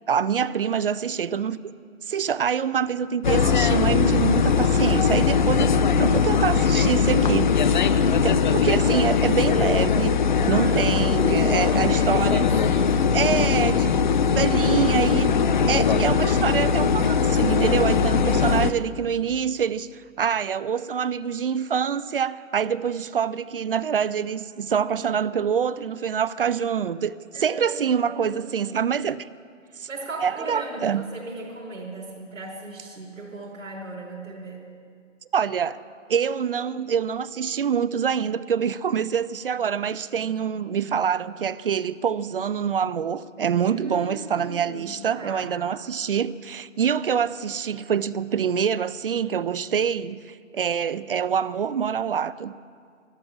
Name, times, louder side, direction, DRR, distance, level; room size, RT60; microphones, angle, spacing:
voice 1, 0.1-1.6 2.1-7.8 8.2-12.5 13.1-14.0 14.3-15.3 15.7-29.3 29.8-29.9 30.2-31.1 35.3-35.8 36.1-52.5, right 7 dB, 45° right, 0.4 m, -25 dB
sound 1, 3.2-18.7, left 6 dB, 40° left, 0.5 m, -20 dB
voice 2, 10.5-11.0 11.2-13.0 18.2-18.6 27.3-28.7 29.7-34.6 43.7-45.5, right 2 dB, 80° right, 4.8 m, -38 dB
13.5 x 12.5 x 8.5 m
hypercardioid pair, 155°, 39 cm